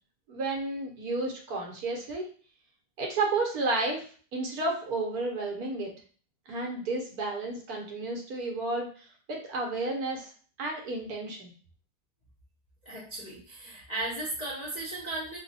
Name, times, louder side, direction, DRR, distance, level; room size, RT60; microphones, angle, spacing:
voice 1, 0.3-2.3 3.0-4.0 4.3-5.9 6.5-10.3 10.6-11.5, right 2 dB, 70° right, 1 dB, 1.3 m, -32 dB
voice 2, 12.8-15.4, right 2 dB, 40° left, -6 dB, 0.6 m, -36 dB
3.1 x 2.1 x 3.9 m, 0.43 s
omnidirectional pair, 1.7 m